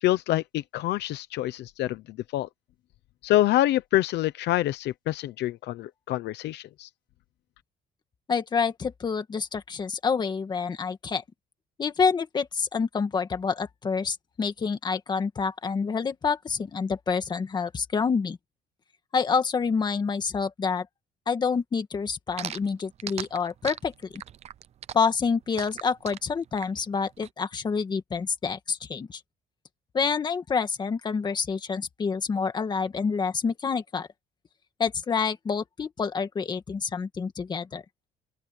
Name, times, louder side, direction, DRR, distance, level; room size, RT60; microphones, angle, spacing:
voice 1, 0.0-2.5 3.2-6.9, left 14 dB, 70° left, 0.9 m, -26 dB
voice 2, 8.3-11.2 11.8-18.4 19.1-20.9 21.3-24.2 24.9-29.2 29.9-34.1 34.8-37.8, left 5 dB, 25° left, 1.7 m, -27 dB
sound 1, 22.4-27.3, right 10 dB, 35° right, 0.5 m, -38 dB
open air
cardioid pair, 180°, 18 cm